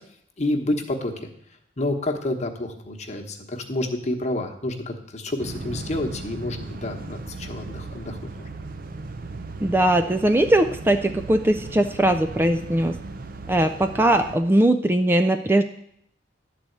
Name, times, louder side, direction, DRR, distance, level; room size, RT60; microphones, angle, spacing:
voice 1, 0.4-1.3 1.8-8.5, left 1 dB, 40° left, 4 dB, 1.1 m, -29 dB
garbage truck exit, 5.4-14.4, right 3 dB, 50° right, 0.6 m, -37 dB
voice 2, 9.6-13.0 13.5-15.6, right 1 dB, 10° right, 7 dB, 0.3 m, -20 dB
11.5 x 4.2 x 8.0 m, 0.72 s
head